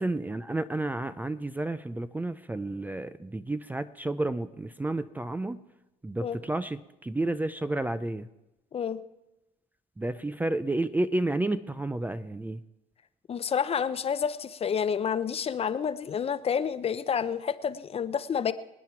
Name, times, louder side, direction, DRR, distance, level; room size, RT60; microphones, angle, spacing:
voice 1, 0.0-5.6 6.0-8.3 10.0-12.6, right 2 dB, 10° right, 13 dB, 0.4 m, -31 dB
voice 2, 13.3-18.5, left 7 dB, 35° left, 14 dB, 0.6 m, -29 dB
25.5 x 9.2 x 4.5 m, 0.96 s
cardioid pair, 110°, 17 cm